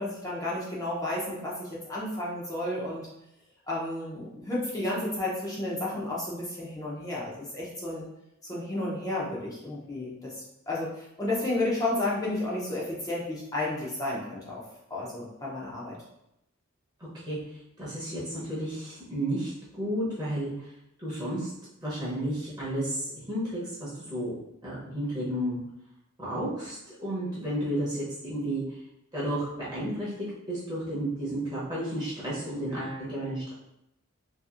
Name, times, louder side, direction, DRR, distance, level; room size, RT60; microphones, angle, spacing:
voice 1, 0.0-3.1 3.7-8.1 8.5-10.3 10.7-14.6 14.9-16.0, left 1 dB, 15° left, -6 dB, 0.6 m, -32 dB
voice 2, 17.8-20.5 21.0-21.5 21.8-24.4 24.6-25.6 26.2-28.6 29.1-30.1 30.5-33.5, right 1 dB, 20° right, -8 dB, 0.8 m, -32 dB
2.8 x 2.5 x 2.4 m, 0.83 s
head